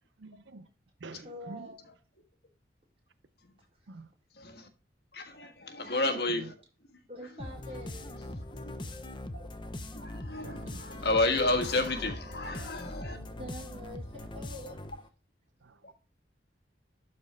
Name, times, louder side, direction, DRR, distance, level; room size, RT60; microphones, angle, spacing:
voice 1, 0.2-0.7 1.0-1.7 3.9-4.1 6.0-6.5 10.4-11.1 12.6-13.2 15.6-15.9, right 3 dB, 85° right, 0.6 m, -48 dB
voice 2, 1.2-1.9 7.1-8.3 13.1-14.8, left 1 dB, 35° right, 4.2 m, -46 dB
voice 3, 4.4-4.7 5.1-6.5 8.5-8.8 9.3-9.5 9.9-13.2, left 2 dB, 60° left, 1.4 m, -31 dB
sound 1, 7.4-15.1, left 1 dB, 25° left, 0.8 m, -41 dB
12.5 x 4.4 x 3.3 m
head